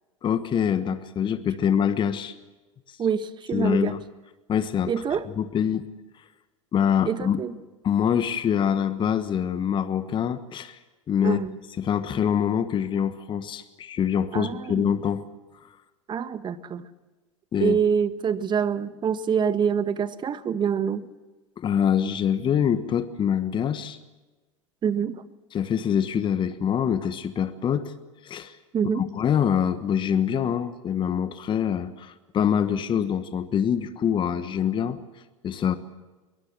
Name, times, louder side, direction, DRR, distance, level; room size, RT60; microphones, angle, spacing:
voice 1, 0.2-2.3 3.5-4.0 4.5-4.9 5.4-5.9 6.7-7.4 7.8-10.8 11.1-11.4 11.8-15.2 17.5-17.8 21.6-24.0 25.5-27.9 28.2-28.6 28.9-35.0 35.4-35.8, left 8 dB, 30° left, 1.4 m, -25 dB
voice 2, 3.0-3.9 4.9-5.3 7.0-7.6 11.2-11.6 14.3-14.9 16.1-16.8 17.6-21.1 24.8-25.2 28.7-29.1, right 7 dB, 25° right, 1.5 m, -26 dB
22.5 x 22.0 x 7.5 m
hypercardioid pair, 90°, 17 cm